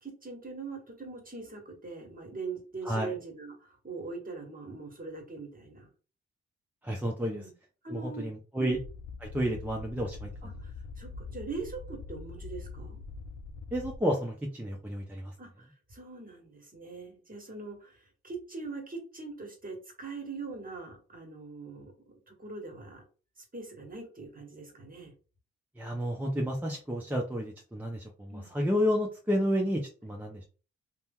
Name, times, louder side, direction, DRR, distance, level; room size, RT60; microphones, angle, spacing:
voice 1, 0.0-5.9 7.3-7.5 7.8-8.2 8.6-8.8 10.4-13.0 15.4-23.0 23.4-25.1 28.3-28.6, right 4 dB, 30° right, 2 dB, 1.4 m, -42 dB
voice 2, 6.8-7.4 7.9-8.8 9.2-10.3 13.7-15.3 25.8-30.4, equal, 5° right, -1 dB, 0.7 m, -31 dB
sound 1, 8.7-14.0, left 4 dB, 75° left, 0.6 m, -43 dB
2.7 x 2.2 x 3.5 m, 0.36 s
supercardioid pair, 50°, 30 cm